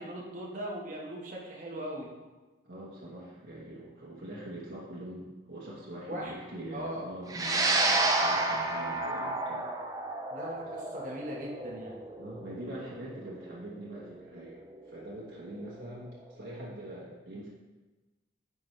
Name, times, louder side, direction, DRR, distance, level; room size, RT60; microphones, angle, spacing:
voice 1, 0.0-2.1 6.1-6.3 6.7-7.0 10.3-12.0, equal, 40° right, -3 dB, 1.4 m, -39 dB
voice 2, 2.6-9.7 12.2-14.6 14.8-17.5, right 1 dB, 75° right, -6 dB, 1.2 m, -43 dB
sound 1, 7.3-15.8, right 2 dB, 20° right, 0.5 m, -31 dB
9.7 x 4.3 x 3.3 m, 1.2 s
head